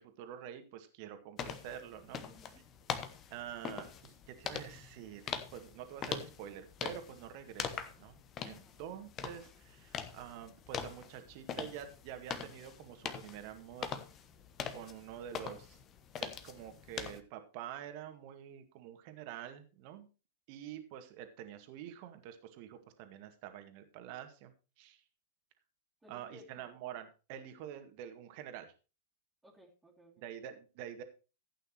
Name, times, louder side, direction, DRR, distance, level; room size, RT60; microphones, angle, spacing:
voice 1, 0.0-2.2 3.3-5.2 5.5-13.9 14.7-15.8 16.2-20.1 20.5-25.0 26.1-28.7 30.2-31.0, right 10 dB, 45° right, 8 dB, 1.9 m, -47 dB
sound 1, 1.4-17.2, left 8 dB, 30° left, 1.2 m, -43 dB
voice 2, 2.2-2.6 8.5-8.8 15.1-15.5 26.0-26.8 29.4-30.2, left 1 dB, 5° right, -1 dB, 2.9 m, -60 dB
15.0 x 9.0 x 3.1 m, 0.32 s
figure-of-eight pair, 100°, 0 cm